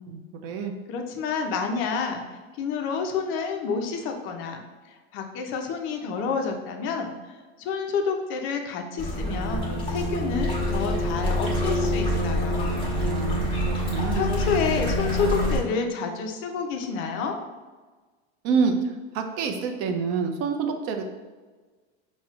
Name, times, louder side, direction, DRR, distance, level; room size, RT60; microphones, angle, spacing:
voice 1, 0.1-0.7 13.0-13.4 13.7-14.3 18.4-18.7 19.1-21.0, right 5 dB, 45° right, 5 dB, 0.5 m, -27 dB
voice 2, 0.9-4.6 4.9-12.8 14.1-17.4, left 5 dB, 40° left, 4 dB, 0.4 m, -29 dB
sound 1, 9.0-15.6, left 1 dB, 15° left, 1.1 m, -26 dB
5.8 x 2.1 x 2.3 m, 1.3 s
supercardioid pair, 140°, 33 cm